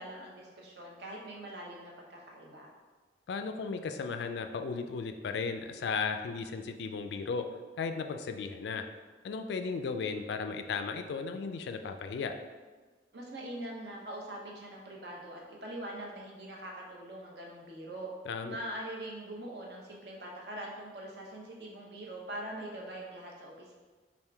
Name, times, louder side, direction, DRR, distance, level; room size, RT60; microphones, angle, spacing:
voice 1, 0.0-2.7 13.1-18.1 18.5-23.8, right 1 dB, 65° right, -2 dB, 0.8 m, -43 dB
voice 2, 3.3-7.4 7.8-8.8 9.2-12.4 18.3-18.6, left 5 dB, 70° left, 7 dB, 0.3 m, -35 dB
3.6 x 2.5 x 4.5 m, 1.3 s
head